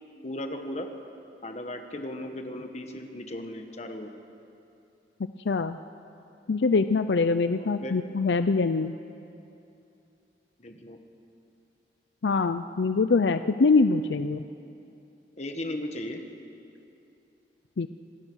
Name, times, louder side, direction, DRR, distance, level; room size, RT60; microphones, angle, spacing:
voice 1, 0.2-0.9 1.4-4.1 7.6-7.9 10.6-11.0 15.4-16.2, left 1 dB, 40° left, 5 dB, 1.6 m, -36 dB
voice 2, 5.4-5.8 6.5-8.9 12.2-14.4 17.8-17.9, left 4 dB, 80° left, 11 dB, 0.5 m, -24 dB
26.5 x 18.0 x 6.4 m, 2.7 s
head